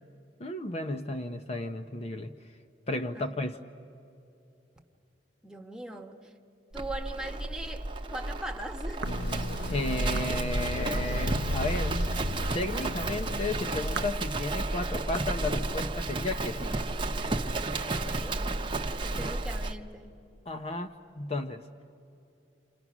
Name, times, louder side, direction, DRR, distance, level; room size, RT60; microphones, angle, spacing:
voice 1, 0.4-2.3 2.9-3.6 9.7-12.0 12.5-16.8 20.5-21.6, left 2 dB, 35° left, 7 dB, 0.7 m, -33 dB
voice 2, 5.4-6.2 6.7-9.1 17.7-18.4 19.0-20.1, right 1 dB, 5° right, 2 dB, 1.3 m, -40 dB
Livestock farm animals working animals, 6.7-19.8, right 2 dB, 30° right, 0.9 m, -32 dB
sound 1, 8.2-9.5 10.1-10.4 11.7-12.2 13.0-13.2 13.9-14.2 15.1-15.4, right 5 dB, 70° right, 0.6 m, -41 dB
sound 2, 9.0-14.1, left 3 dB, 85° left, 0.9 m, -38 dB
29.0 x 27.5 x 6.1 m, 2.8 s
head